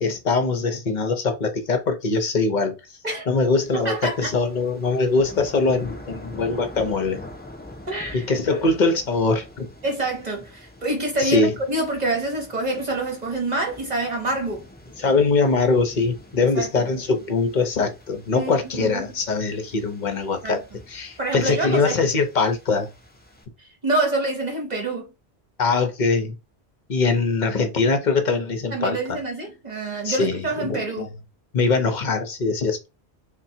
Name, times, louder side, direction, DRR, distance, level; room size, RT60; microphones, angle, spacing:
voice 1, 0.0-2.8 3.3-7.2 8.1-9.7 11.2-11.5 15.0-20.6 20.9-22.9 25.6-26.3 26.9-29.2 30.0-31.1 31.5-32.9, left 3 dB, 50° left, 0.8 m, -22 dB
sound 1, 3.6-23.4, left 1 dB, 15° left, 0.5 m, -45 dB
voice 2, 3.8-4.3 7.9-8.3 9.8-14.6 16.5-16.9 18.3-19.1 20.4-20.6 21.2-22.0 23.6-25.1 28.7-31.1, right 2 dB, 45° right, 0.9 m, -27 dB
3.7 x 2.2 x 4.2 m
omnidirectional pair, 1.1 m